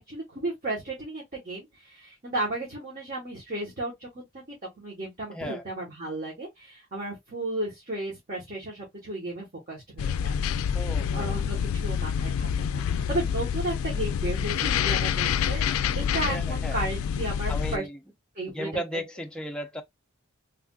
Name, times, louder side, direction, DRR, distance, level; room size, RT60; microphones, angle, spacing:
voice 1, 0.1-4.4 4.8-10.4 11.1-15.6 16.0-17.9 18.3-18.7, right 2 dB, 40° right, 1.3 m, -34 dB
voice 2, 5.3-5.6 10.7-11.3 16.3-16.8 17.5-18.0 18.5-19.8, right 1 dB, 5° left, 0.4 m, -35 dB
sound 1, 10.0-17.8, left 7 dB, 75° left, 0.3 m, -27 dB
3.3 x 2.5 x 2.3 m
head